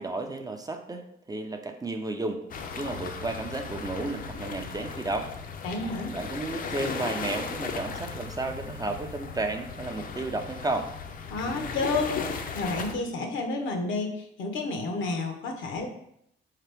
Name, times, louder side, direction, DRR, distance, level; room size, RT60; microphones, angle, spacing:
voice 1, 0.0-2.4 2.7-5.3 6.1-10.9, right 2 dB, 20° right, 5 dB, 0.4 m, -33 dB
sound 1, 2.5-12.9, left 5 dB, 45° left, 0.5 m, -36 dB
voice 2, 5.6-6.1 11.3-15.9, left 3 dB, 75° left, 4 dB, 0.8 m, -30 dB
3.8 x 2.9 x 3.3 m, 0.73 s
cardioid pair, 90°, 20 cm